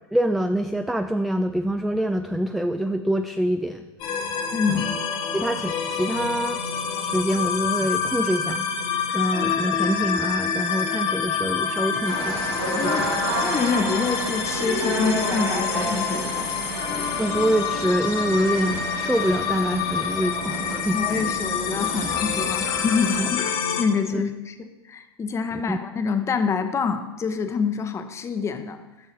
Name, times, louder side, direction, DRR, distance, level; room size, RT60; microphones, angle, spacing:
voice 1, 0.1-3.8 4.7-4.8 5.3-6.6 7.0-8.7 9.1-12.4 12.8-13.0 17.2-21.0 23.2-23.3 24.1-24.2 25.5-25.8, equal, ahead, 7 dB, 0.3 m, -25 dB
sound 1, 4.0-23.8, left 6 dB, 40° left, 1.4 m, -27 dB
voice 2, 4.5-4.9 12.8-13.1 13.4-16.5 20.8-28.8, left 5 dB, 20° left, 8 dB, 0.9 m, -26 dB
sound 2, 12.1-23.3, right 1 dB, 85° right, 2.5 m, -31 dB
15.0 x 6.8 x 3.0 m, 1.1 s
figure-of-eight pair, 85°, 14 cm